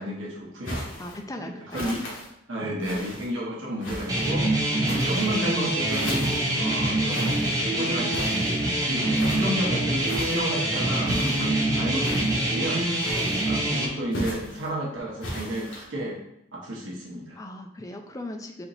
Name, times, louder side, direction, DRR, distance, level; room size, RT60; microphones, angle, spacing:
voice 1, 0.0-0.8 1.4-2.0 2.5-7.4 7.7-9.0 9.3-12.8 13.5-16.2 16.5-17.4, right 1 dB, 75° right, -3 dB, 0.9 m, -32 dB
sound 1, 0.6-1.2 1.7-2.3 2.8-3.3 3.8-4.3 4.8-5.4 5.9-6.6 7.1-7.6 8.1-8.6 9.1-9.5 10.0-10.5 11.1-11.5 12.0-12.5 13.0-13.6 14.1-14.7 15.2-15.8, equal, 80° left, 1.4 m, -36 dB
voice 2, 1.0-1.9 4.7-4.9 9.0-9.2 13.1-13.3 17.4-18.7, left 1 dB, 20° left, 3 dB, 0.4 m, -39 dB
sound 2, 4.1-13.9, right 1 dB, 20° right, 0.8 m, -25 dB
4.3 x 2.9 x 4.0 m, 0.77 s
head